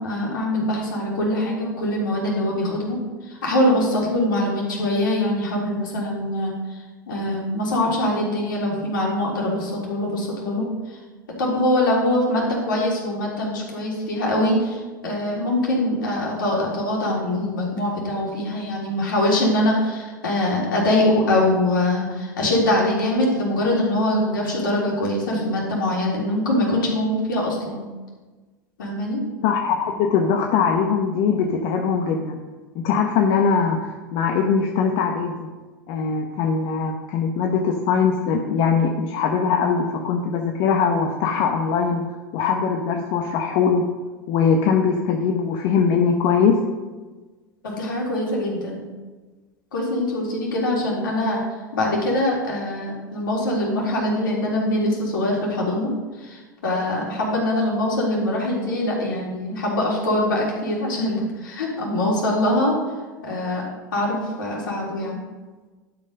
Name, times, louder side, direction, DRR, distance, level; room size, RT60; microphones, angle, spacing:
voice 1, 0.0-3.0 3.2-11.0 11.4-27.9 28.8-29.2 47.6-48.8 49.7-51.4 51.7-62.8 63.2-63.6 63.9-65.2, left 1 dB, 75° left, -3 dB, 3.6 m, -23 dB
voice 2, 29.4-32.4 32.8-35.5 35.9-42.0 42.3-43.8 44.3-46.6, left 6 dB, 55° left, 3 dB, 1.1 m, -21 dB
11.5 x 5.5 x 5.4 m, 1.3 s
hypercardioid pair, 85°, 11 cm